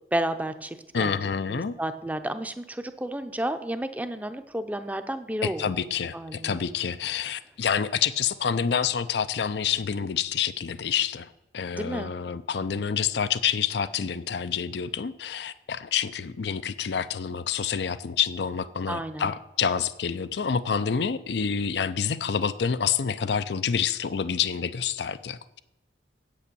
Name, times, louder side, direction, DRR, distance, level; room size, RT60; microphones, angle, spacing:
voice 1, 0.1-1.2 1.5-5.7 6.1-6.6 11.8-12.1 18.9-19.3, right 1 dB, 10° right, 9 dB, 0.6 m, -31 dB
voice 2, 0.9-1.7 5.4-11.3 11.5-25.6, left 7 dB, 70° left, 14 dB, 0.5 m, -28 dB
8.6 x 8.4 x 6.8 m, 0.90 s
head